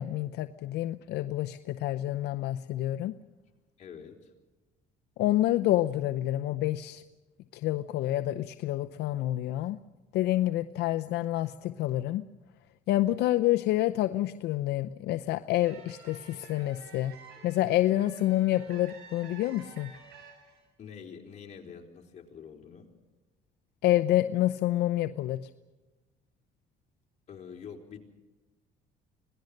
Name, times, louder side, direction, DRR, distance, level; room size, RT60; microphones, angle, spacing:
voice 1, 0.0-3.1 5.2-7.0 7.5-9.8 10.1-12.2 12.9-17.1 17.4-19.9 23.8-25.4, left 14 dB, 80° left, 8 dB, 0.7 m, -28 dB
voice 2, 3.8-4.3 20.8-22.9 27.3-28.0, left 7 dB, 45° left, 1 dB, 4.2 m, -46 dB
sound 1, 15.6-20.6, right 6 dB, 75° right, 7.5 m, -51 dB
25.5 x 18.5 x 6.6 m, 1.1 s
cardioid pair, 110°, 17 cm